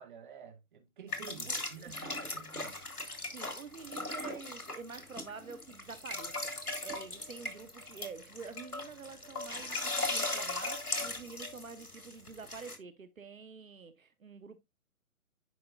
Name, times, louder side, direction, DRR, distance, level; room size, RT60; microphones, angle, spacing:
voice 1, 0.0-2.8, right 7 dB, 35° right, 1.2 m, -50 dB
sound 1, 1.1-12.8, left 2 dB, 90° left, 1.9 m, -38 dB
voice 2, 1.4-2.0 3.3-14.6, right 5 dB, 65° right, 1.0 m, -48 dB
9.4 x 5.1 x 2.3 m
figure-of-eight pair, 140°, 43 cm